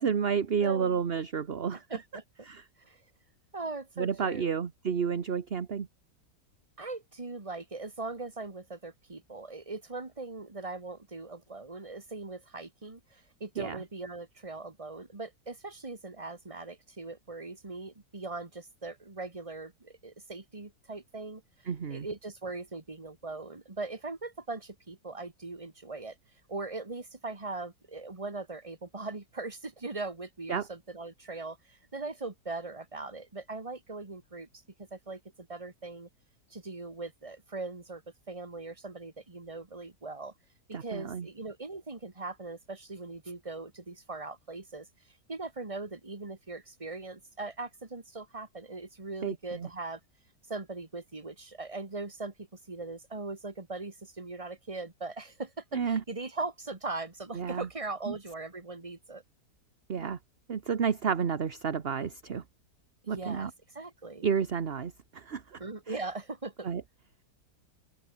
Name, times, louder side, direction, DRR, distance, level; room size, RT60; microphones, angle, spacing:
voice 1, 0.0-1.8 2.5-2.6 4.0-5.9 13.6-13.8 21.7-22.1 30.5-30.7 40.7-41.3 49.2-49.7 55.7-56.0 57.3-57.7 58.1-58.2 59.9-60.2 60.5-62.4 63.1-63.5 64.2-65.6 66.6-66.8, right 6 dB, 40° right, 1.2 m, -30 dB
voice 2, 0.6-1.0 1.7-2.2 2.8-3.0 3.5-4.6 6.8-21.4 21.9-26.2 26.5-36.1 36.5-38.0 38.3-40.3 40.7-50.0 50.5-59.2 63.1-63.5 63.7-64.3 65.6-66.7, right 3 dB, 20° right, 2.0 m, -40 dB
open air
omnidirectional pair, 1.8 m